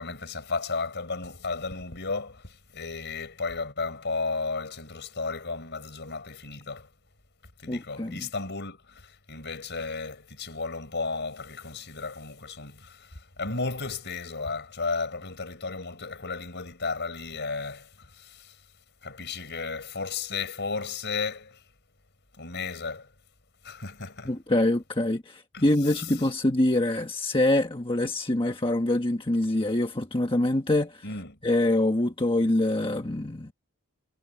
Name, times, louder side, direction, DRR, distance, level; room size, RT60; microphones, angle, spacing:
voice 1, 0.0-6.9 7.6-18.6 19.0-21.6 22.3-23.1 23.6-24.4 25.5-26.3 31.0-31.4, left 4 dB, 50° left, 5.1 m, -34 dB
voice 2, 7.7-8.3 24.2-31.0 31.4-33.5, left 1 dB, 25° left, 1.3 m, -25 dB
head